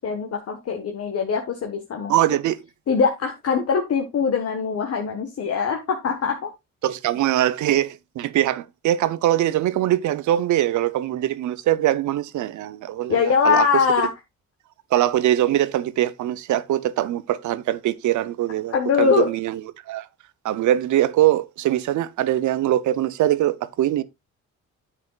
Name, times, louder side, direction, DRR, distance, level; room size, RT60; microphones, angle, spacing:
voice 1, 0.0-2.1 2.9-6.5 13.1-14.1 18.7-19.3, left 6 dB, 55° left, 1.4 m, -22 dB
voice 2, 2.1-2.6 6.8-13.7 14.9-20.1 20.4-24.0, right 13 dB, 75° right, 0.7 m, -22 dB
9.7 x 7.5 x 2.4 m
cardioid pair, 90°, 30 cm